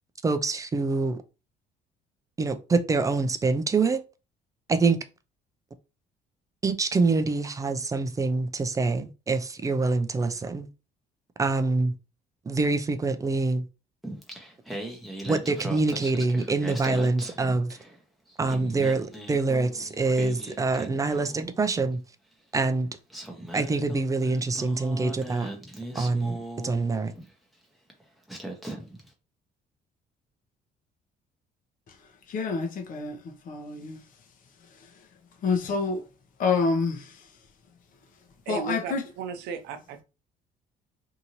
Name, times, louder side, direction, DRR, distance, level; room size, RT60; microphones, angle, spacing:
voice 1, 0.2-1.2 2.4-4.0 4.7-5.0 6.6-10.7 11.4-11.9 12.5-13.6 15.2-17.8 18.4-22.0 22.5-22.9 23.5-25.5 25.9-26.4 26.6-27.1, right 3 dB, 20° right, 0.4 m, -25 dB
Singing, 14.0-18.0 18.3-21.5 22.5-22.6 23.1-27.3 27.9-28.0 28.3-29.1, right 1 dB, ahead, 0.8 m, -39 dB
voice 2, 32.3-34.0 35.4-36.0 36.4-37.2 38.5-39.0, left 4 dB, 55° left, 0.7 m, -27 dB
voice 3, 38.5-40.0, right 6 dB, 85° right, 0.6 m, -35 dB
2.7 x 2.5 x 2.9 m
cardioid pair, 110°, 17 cm